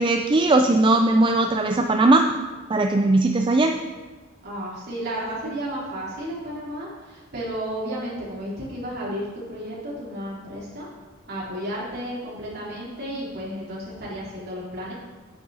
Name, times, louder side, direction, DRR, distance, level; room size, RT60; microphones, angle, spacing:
voice 1, 0.0-2.3 2.7-3.8, right 2 dB, 25° right, 4 dB, 0.4 m, -19 dB
voice 2, 4.4-10.9 11.3-14.9, equal, 55° right, -6 dB, 3.5 m, -32 dB
9.7 x 8.7 x 4.0 m, 1.3 s
head